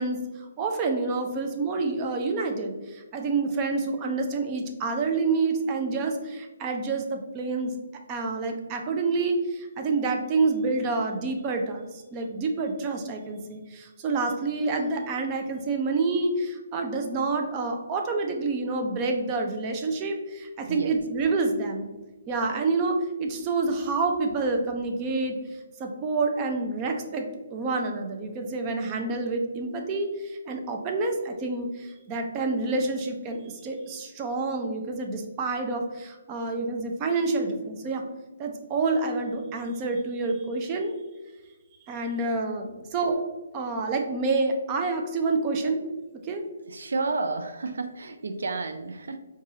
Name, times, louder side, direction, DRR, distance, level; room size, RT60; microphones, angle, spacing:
voice 1, 0.0-7.8 8.1-21.9 22.3-25.4 25.8-38.0 38.4-41.0 41.9-43.2 43.5-45.9 46.3-46.4, right 3 dB, 25° right, 3 dB, 0.5 m, -28 dB
voice 2, 46.7-49.2, right 3 dB, 80° right, 7 dB, 0.3 m, -31 dB
4.6 x 2.3 x 2.8 m, 1.2 s
hypercardioid pair, 150°, 0 cm